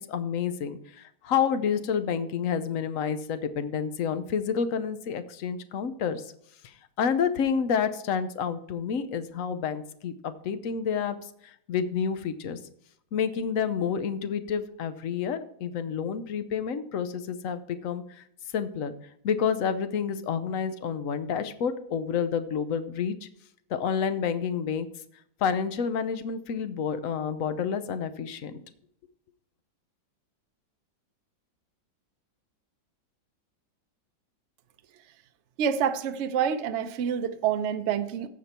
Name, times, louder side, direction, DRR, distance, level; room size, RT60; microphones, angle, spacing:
voice 1, 0.1-6.2 6.6-11.2 11.7-12.6 13.1-18.2 18.5-18.9 19.2-23.3 23.7-24.9 25.4-28.5, left 7 dB, 60° left, 11 dB, 0.9 m, -29 dB
voice 2, 35.6-38.3, right 8 dB, 75° right, 9 dB, 0.6 m, -27 dB
15.0 x 5.2 x 4.3 m, 0.70 s
omnidirectional pair, 2.1 m